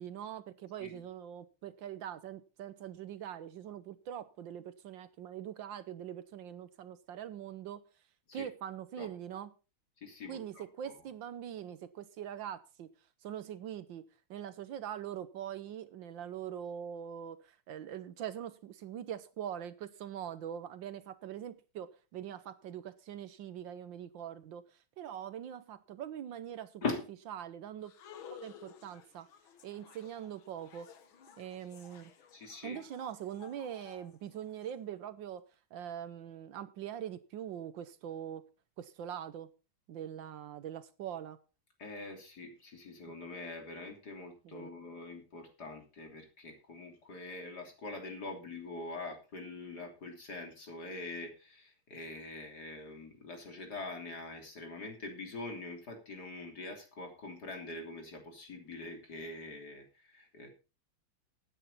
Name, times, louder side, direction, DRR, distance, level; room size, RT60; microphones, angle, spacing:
voice 1, 0.0-7.8 8.3-9.5 10.3-12.9 13.2-14.0 14.3-24.6 25.0-26.9 27.3-27.9 28.3-29.3 29.6-30.9 31.4-32.1 32.6-35.4 35.7-38.4 38.8-39.5 39.9-41.4 44.4-44.7, right 10 dB, 70° right, 1.5 m, -43 dB
voice 2, 10.0-10.6 26.8-27.1 32.3-32.8 41.8-60.5, left 3 dB, 50° left, 3.7 m, -43 dB
sound 1, 27.8-34.7, left 8 dB, 75° left, 2.1 m, -55 dB
15.5 x 9.3 x 4.1 m
omnidirectional pair, 2.2 m